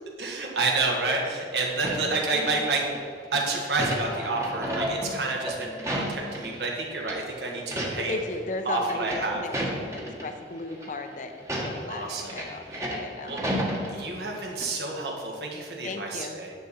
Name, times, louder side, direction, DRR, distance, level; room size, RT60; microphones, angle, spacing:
voice 1, 0.2-2.9 3.3-8.2 8.6-9.4 11.9-12.4 12.7-12.8 13.2-13.4 13.9-16.5, right 3 dB, 70° right, -1 dB, 1.6 m, -29 dB
sound 1, 1.8-3.0 3.3-6.7 7.0-7.2 7.6-8.2 8.5-10.2 10.7-10.9 11.4-14.3 14.6-14.7, equal, 15° right, 1.2 m, -32 dB
voice 2, 8.0-9.5 9.9-13.4 15.8-16.4, left 2 dB, 45° left, 6 dB, 0.6 m, -36 dB
10.0 x 6.9 x 4.2 m, 2.5 s
head